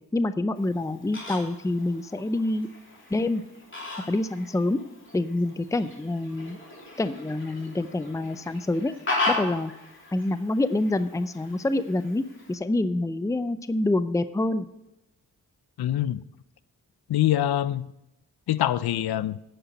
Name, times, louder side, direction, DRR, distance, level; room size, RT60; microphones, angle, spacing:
voice 1, 0.1-2.7 3.1-3.4 4.0-4.8 5.1-6.6 7.0-9.0 9.3-9.7 10.1-14.7, left 2 dB, 10° left, 12 dB, 0.5 m, -26 dB
Fowl, 0.6-12.5, left 2 dB, 30° left, 3.1 m, -36 dB
voice 2, 15.8-16.2 17.1-17.9 18.5-19.4, left 12 dB, 80° left, 17 dB, 0.5 m, -24 dB
9.8 x 5.8 x 7.6 m, 0.92 s
cardioid pair, 55°, 37 cm